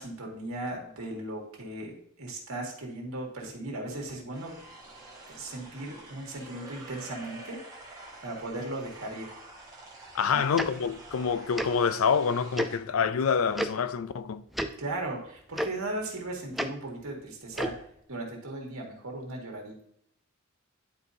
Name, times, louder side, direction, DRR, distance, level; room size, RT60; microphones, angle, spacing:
voice 1, 0.0-4.5 5.3-7.6 8.2-9.3 10.3-10.4 14.8-17.8 18.1-19.8, right 2 dB, 85° right, 2.1 m, -37 dB
sound 1, 4.3-12.8, right 2 dB, 15° right, 1.4 m, -48 dB
voice 2, 10.1-14.4, left 6 dB, 75° left, 0.4 m, -27 dB
Tick-tock, 10.6-10.7 11.5-11.7 12.5-12.7 13.5-13.7 14.5-14.7 15.5-15.7 16.5-16.7 17.5-17.7, right 1 dB, ahead, 0.4 m, -29 dB
10.5 x 4.6 x 2.7 m
head